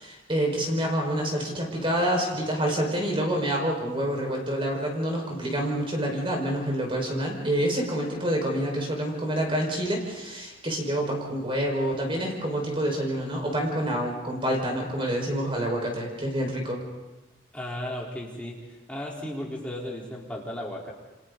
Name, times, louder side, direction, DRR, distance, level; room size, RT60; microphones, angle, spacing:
voice 1, 0.0-16.8, right 1 dB, 25° right, 0 dB, 5.1 m, -27 dB
voice 2, 17.5-18.6 18.9-20.9, left 1 dB, 5° left, -4 dB, 3.9 m, -35 dB
29.0 x 26.0 x 4.1 m, 1.1 s
head